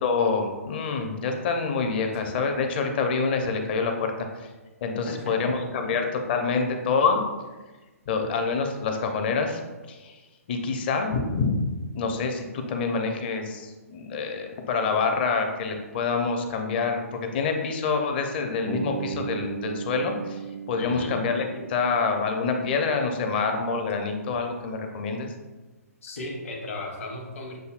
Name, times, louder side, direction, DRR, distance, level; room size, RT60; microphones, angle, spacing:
voice 1, 0.0-4.1 4.8-7.2 8.1-9.6 9.9-10.1 10.5-11.5 11.9-20.4 20.7-25.3, left 4 dB, 40° left, 4 dB, 0.6 m, -26 dB
voice 2, 5.1-5.5 5.8-5.9 20.8-21.1 26.0-27.6, left 2 dB, 60° left, 0 dB, 1.2 m, -35 dB
Bass guitar, 18.7-22.8, right 6 dB, 65° right, 0.6 m, -36 dB
7.6 x 2.7 x 2.4 m, 1.2 s
figure-of-eight pair, 125°, 8 cm